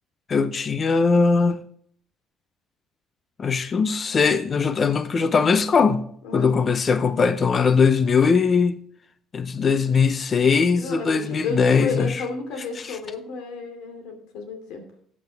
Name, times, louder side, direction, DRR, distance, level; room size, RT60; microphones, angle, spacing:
voice 1, 0.3-1.6 3.4-6.1 6.3-8.8 9.3-12.2, left 5 dB, 30° left, 0.7 m, -20 dB
voice 2, 10.8-14.8, left 3 dB, 90° left, 2.8 m, -32 dB
13.5 x 8.7 x 3.5 m
cardioid pair, 150°, 0 cm